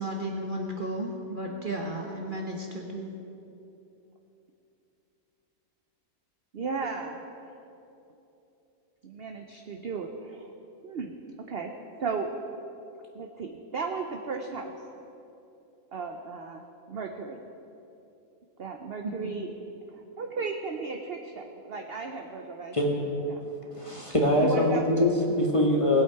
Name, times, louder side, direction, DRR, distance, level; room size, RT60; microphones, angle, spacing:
voice 1, 0.0-3.1 19.0-19.3, right 1 dB, 35° right, 0 dB, 1.1 m, -34 dB
voice 2, 6.5-7.2 9.0-10.5 10.8-11.1 11.5-12.3 13.1-14.7 15.9-17.4 18.6-19.5 19.9-23.4 24.4-24.8, right 4 dB, 55° right, 4 dB, 0.7 m, -35 dB
voice 3, 23.7-26.0, left 1 dB, 20° left, -1 dB, 1.4 m, -23 dB
19.5 x 8.2 x 4.7 m, 2.9 s
omnidirectional pair, 1.6 m